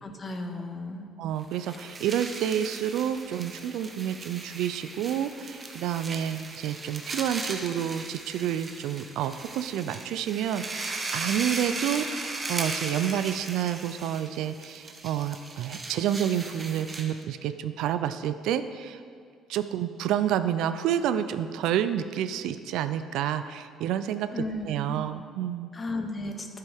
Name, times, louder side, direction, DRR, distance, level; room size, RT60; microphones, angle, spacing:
voice 1, 0.0-1.1 24.3-25.0 25.7-26.6, left 2 dB, 30° left, 5 dB, 0.8 m, -34 dB
voice 2, 1.2-19.0 19.5-25.7, right 10 dB, 80° right, 11 dB, 0.4 m, -29 dB
sound 1, 1.4-17.2, right 3 dB, 25° right, 0.9 m, -37 dB
9.7 x 7.4 x 3.5 m, 2.2 s
cardioid pair, 110°, 0 cm